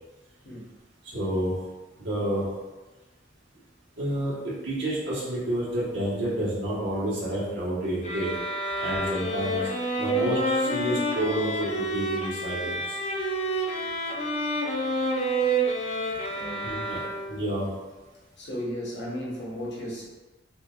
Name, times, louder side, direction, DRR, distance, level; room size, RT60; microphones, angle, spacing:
voice 1, 1.1-1.5 2.0-2.4 4.0-8.3 8.8-9.6 10.0-13.0 16.6-17.0 17.3-17.7, right 1 dB, 70° right, -7 dB, 1.4 m, -29 dB
sound 1, 8.0-17.5, right 1 dB, 35° left, 0.5 m, -29 dB
voice 2, 16.3-16.8 18.4-20.1, equal, 60° left, -4 dB, 1.1 m, -35 dB
5.6 x 2.5 x 2.4 m, 1.1 s
head